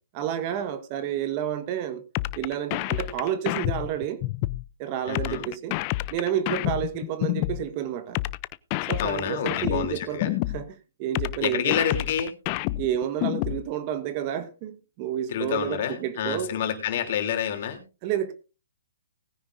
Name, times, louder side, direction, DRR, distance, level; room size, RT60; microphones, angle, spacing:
voice 1, 0.1-2.0 2.4-4.2 4.8-5.8 6.1-8.2 8.9-10.7 11.0-11.8 12.8-16.5 18.0-18.3, right 10 dB, 35° right, 1.3 m, -30 dB
sound 1, 2.1-4.6 5.1-7.6 8.1-10.6 11.1-13.6, left 19 dB, 35° left, 0.5 m, -28 dB
voice 2, 5.1-5.5 9.0-10.3 11.4-12.3 15.3-17.8, left 9 dB, 50° left, 3.2 m, -28 dB
19.5 x 9.9 x 2.6 m
hypercardioid pair, 145°, 0 cm